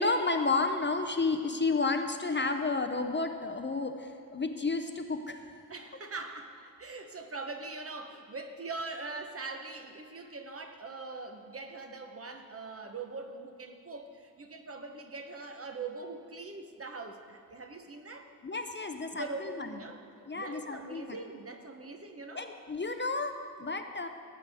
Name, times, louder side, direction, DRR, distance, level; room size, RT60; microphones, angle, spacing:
voice 1, 0.0-5.6 18.4-19.8 20.3-21.2 22.4-24.1, left 3 dB, 30° left, 6 dB, 0.5 m, -31 dB
voice 2, 5.7-18.3 19.1-20.0 20.4-22.5, right 3 dB, 40° right, 5 dB, 0.8 m, -42 dB
16.5 x 8.2 x 3.5 m, 2.5 s
wide cardioid pair, 135°, 35 cm